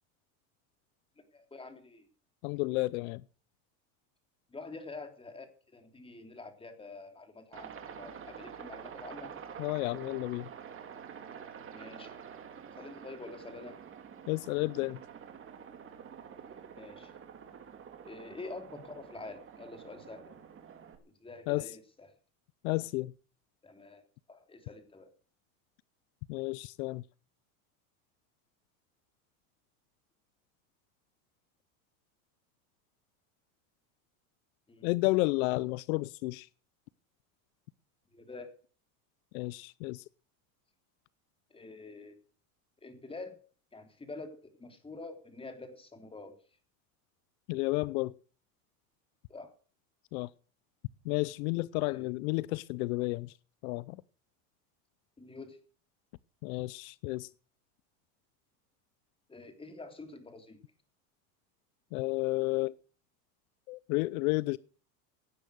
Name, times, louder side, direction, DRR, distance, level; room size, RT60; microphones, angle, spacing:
voice 1, 1.3-2.0 4.5-5.5 5.7-9.3 11.7-12.2 12.8-13.8 16.8-17.1 18.0-20.4 21.2-22.1 23.6-25.1 34.7-34.9 38.1-38.5 41.5-42.1 42.8-43.4 43.7-46.3 49.3-49.5 51.9-52.1 55.2-55.6 59.3-60.6, left 3 dB, 10° left, 3.4 m, -47 dB
voice 2, 2.4-3.2 9.6-10.5 14.3-15.0 21.5-21.7 22.6-23.1 26.3-27.0 34.8-36.5 39.3-40.0 47.5-48.1 50.1-50.3 51.0-53.3 53.6-54.0 56.4-57.3 61.9-62.7 63.7-64.6, left 22 dB, 75° left, 0.7 m, -31 dB
Aircraft, 7.5-21.0, right 7 dB, 30° right, 3.0 m, -48 dB
17.5 x 10.0 x 6.5 m
supercardioid pair, 130°, 42 cm